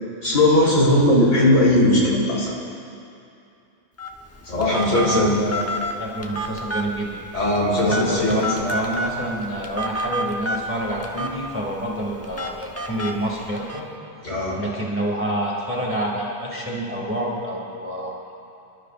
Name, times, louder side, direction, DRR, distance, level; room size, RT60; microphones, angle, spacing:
voice 1, 0.2-2.5 4.5-5.3 7.3-8.8 14.2-14.6, left 1 dB, 75° left, -7 dB, 4.1 m, -19 dB
Telephone, 4.0-13.8, equal, 15° left, 0.7 m, -30 dB
voice 2, 4.7-5.7 6.0-7.2 7.8-13.8 14.6-18.2, equal, 10° right, -4 dB, 2.2 m, -27 dB
27.0 x 12.0 x 2.5 m, 2.6 s
omnidirectional pair, 1.3 m